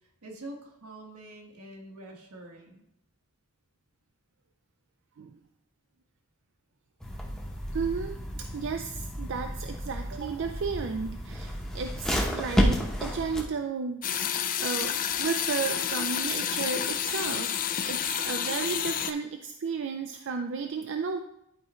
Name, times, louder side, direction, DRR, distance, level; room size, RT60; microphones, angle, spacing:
voice 1, 0.0-2.8, right 1 dB, 80° right, 0 dB, 1.5 m, -45 dB
sound 1, 7.0-13.4, equal, 5° left, 0.9 m, -31 dB
voice 2, 7.7-14.1 14.6-21.2, right 5 dB, 55° right, 6 dB, 0.4 m, -33 dB
sound 2, 14.0-19.1, left 9 dB, 40° left, 0.4 m, -30 dB
11.0 x 4.3 x 3.1 m, 0.79 s
head